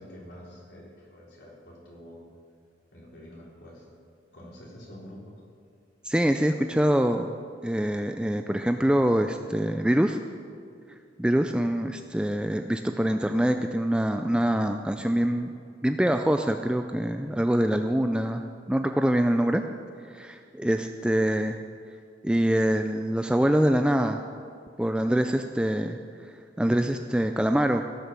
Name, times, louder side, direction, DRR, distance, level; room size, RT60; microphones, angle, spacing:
voice 1, 0.0-2.2 2.9-3.9 4.3-5.3, equal, 70° left, -4 dB, 3.7 m, -47 dB
voice 2, 6.0-7.3 7.6-10.2 11.2-15.5 15.8-19.6 20.1-21.6 22.2-24.2 24.8-26.0 26.6-27.9, right 1 dB, 5° right, 6 dB, 0.3 m, -24 dB
17.0 x 6.6 x 7.4 m, 2.3 s
head